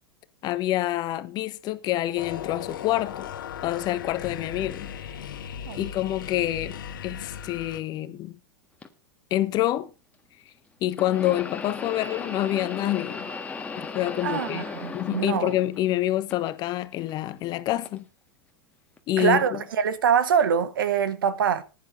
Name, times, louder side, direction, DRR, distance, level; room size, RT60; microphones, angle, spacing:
voice 1, 0.4-3.3 3.6-4.9 5.8-8.4 9.3-9.9 10.8-13.3 13.8-14.7 14.9-18.0 19.1-19.6, left 14 dB, 35° left, 1.0 m, -27 dB
sound 1, 2.2-7.8, left 8 dB, 60° left, 1.4 m, -37 dB
sound 2, 8.8-8.9 10.9-16.0 16.3-17.1 17.9-18.0 19.0-19.1, left 4 dB, 10° left, 1.6 m, -36 dB
voice 2, 14.2-15.5 19.2-21.6, right 7 dB, 65° right, 1.0 m, -24 dB
19.5 x 10.5 x 2.6 m
figure-of-eight pair, 95°, 12 cm